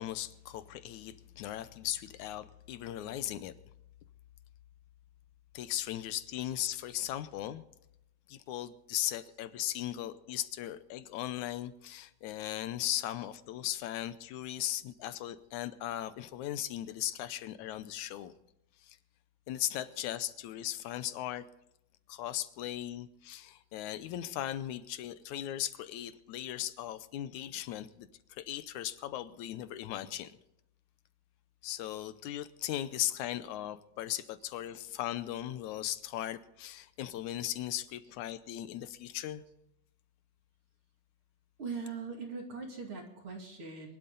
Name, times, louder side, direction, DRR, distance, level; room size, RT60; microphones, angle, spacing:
voice 1, 0.0-3.5 5.5-7.6 8.3-18.3 18.8-19.0 19.5-21.4 22.1-30.4 31.6-39.4, left 12 dB, 75° left, 14 dB, 1.9 m, -38 dB
voice 2, 41.6-44.0, right 5 dB, 40° right, 2 dB, 2.9 m, -41 dB
23.0 x 12.0 x 4.0 m, 0.82 s
omnidirectional pair, 4.0 m